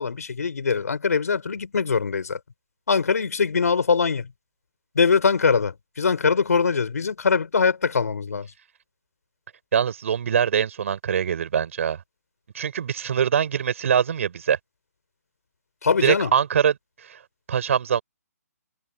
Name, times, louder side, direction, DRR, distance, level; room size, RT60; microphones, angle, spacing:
voice 1, 0.0-2.4 2.9-4.3 4.9-8.5 15.8-16.3, left 5 dB, 75° left, 4.3 m, -22 dB
voice 2, 9.7-12.0 12.5-14.6 16.0-16.8 17.1-17.2 17.5-18.0, right 8 dB, 55° right, 4.8 m, -23 dB
hypercardioid pair, 145°, 9 cm